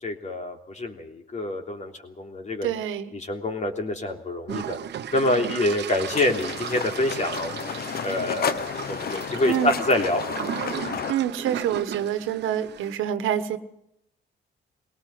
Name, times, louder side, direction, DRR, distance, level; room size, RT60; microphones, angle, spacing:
voice 1, 0.0-2.7 3.1-4.8 5.1-7.7 8.0-10.2, left 1 dB, 35° left, 4 dB, 3.4 m, -26 dB
voice 2, 2.6-3.1 9.4-9.7 10.7-13.6, right 10 dB, 90° right, 10 dB, 1.5 m, -27 dB
sound 1, 4.5-12.9, right 9 dB, 60° right, 1.2 m, -35 dB
sound 2, 6.1-11.1, left 7 dB, 50° left, 1.1 m, -32 dB
21.0 x 18.5 x 7.9 m, 0.78 s
cardioid pair, 90°, 20 cm